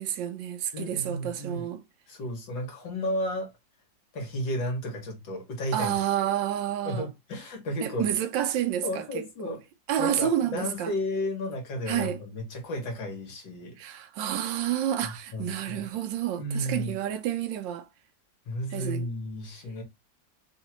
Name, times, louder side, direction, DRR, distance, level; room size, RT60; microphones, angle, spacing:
voice 1, 0.0-1.8 5.7-7.1 7.8-9.6 9.9-10.9 11.9-12.2 13.8-17.9 18.7-19.1, right 10 dB, 75° right, 1.3 m, -29 dB
voice 2, 0.7-1.7 2.1-3.5 4.1-5.9 6.9-8.1 8.8-9.6 10.0-13.8 15.0-15.9 16.4-16.9 18.5-19.8, left 1 dB, 75° left, 2.4 m, -33 dB
4.4 x 2.8 x 3.0 m
omnidirectional pair, 2.0 m